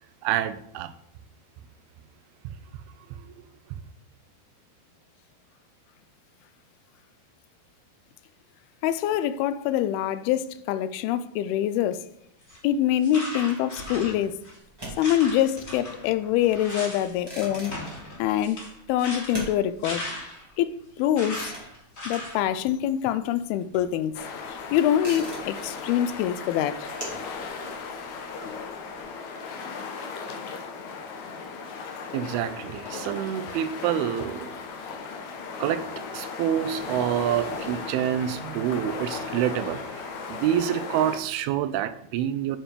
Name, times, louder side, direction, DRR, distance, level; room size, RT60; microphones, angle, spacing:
voice 1, 0.2-0.9 3.4-3.5 32.1-34.6 35.6-35.9 36.1-42.6, right 10 dB, 85° right, 2.4 m, -27 dB
voice 2, 8.8-12.1 12.6-14.4 15.0-17.8 18.2-20.1 20.6-21.5 22.1-24.2 24.5-26.9, left 11 dB, 85° left, 2.4 m, -25 dB
sound 1, 12.4-12.6 13.0-14.6 14.9-17.1 17.4-20.5 21.1-22.4, left 1 dB, 20° left, 3.1 m, -37 dB
sound 2, 14.7-23.0 23.2-29.0, right 1 dB, 5° right, 2.3 m, -42 dB
sound 3, 24.1-41.2, left 5 dB, 65° left, 1.9 m, -36 dB
9.9 x 5.0 x 5.2 m
omnidirectional pair, 4.5 m